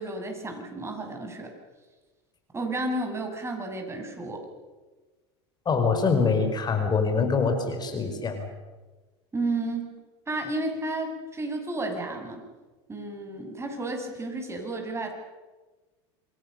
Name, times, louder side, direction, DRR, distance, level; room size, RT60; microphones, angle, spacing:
voice 1, 0.0-1.5 2.5-4.4 9.3-9.9 10.3-12.5 12.9-15.1, right 2 dB, 20° right, 4 dB, 7.1 m, -32 dB
voice 2, 5.6-8.5, left 4 dB, 30° left, 7 dB, 4.5 m, -24 dB
28.0 x 22.0 x 6.6 m, 1.2 s
hypercardioid pair, 90°, 14 cm